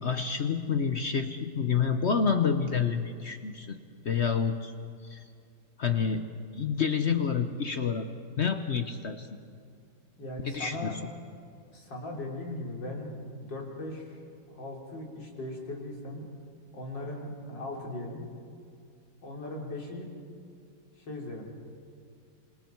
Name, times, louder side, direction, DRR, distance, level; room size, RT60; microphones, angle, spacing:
voice 1, 0.0-3.8 4.0-4.7 5.0-5.2 5.8-8.1 8.4-9.3 10.4-11.0, left 6 dB, 50° left, 8 dB, 0.9 m, -28 dB
voice 2, 10.2-11.0 11.7-14.2 14.5-16.2 16.7-18.2 19.2-20.1 21.0-21.4, left 2 dB, 70° left, -1 dB, 4.2 m, -38 dB
26.5 x 26.5 x 4.6 m, 2.3 s
omnidirectional pair, 2.0 m